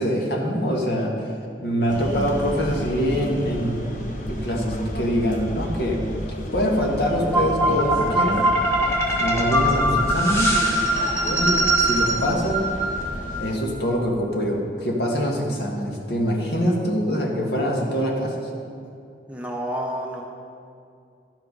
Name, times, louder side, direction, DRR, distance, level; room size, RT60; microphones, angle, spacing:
voice 1, 0.0-1.3 1.6-3.8 4.3-6.0 6.5-8.4 9.1-10.6 11.3-12.7 13.4-18.3, equal, 70° left, -1 dB, 1.7 m, -24 dB
sound 1, 1.9-13.6, equal, 45° left, 1.0 m, -32 dB
sound 2, 7.3-13.4, right 1 dB, 15° left, 1.6 m, -22 dB
voice 2, 19.3-20.2, equal, 5° right, -1 dB, 0.9 m, -29 dB
11.5 x 7.8 x 5.4 m, 2.5 s
head